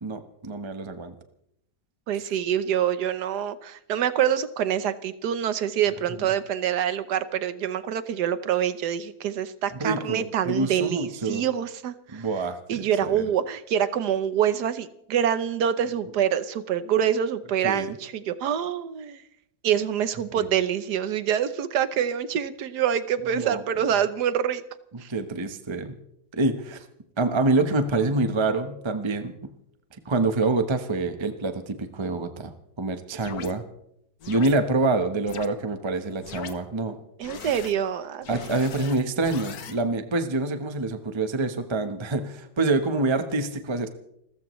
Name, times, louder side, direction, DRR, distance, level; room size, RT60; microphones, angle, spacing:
voice 1, 0.0-1.1 9.8-11.4 12.1-13.2 17.6-17.9 20.3-20.5 23.3-23.6 25.1-26.0 26.3-26.9 27.2-29.5 30.0-32.5 32.8-33.6 34.3-37.0 38.3-43.9, right 3 dB, 20° right, 8 dB, 0.9 m, -26 dB
voice 2, 2.1-12.2 12.7-19.2 19.6-24.6 25.0-25.1 37.2-38.3, right 9 dB, 80° right, 13 dB, 1.5 m, -26 dB
sound 1, 33.2-33.5 34.2-34.5 35.3-35.5 36.2-36.5 37.2-37.7 38.2-39.8, left 7 dB, 70° left, 1.5 m, -39 dB
29.5 x 14.0 x 3.2 m, 0.76 s
omnidirectional pair, 1.7 m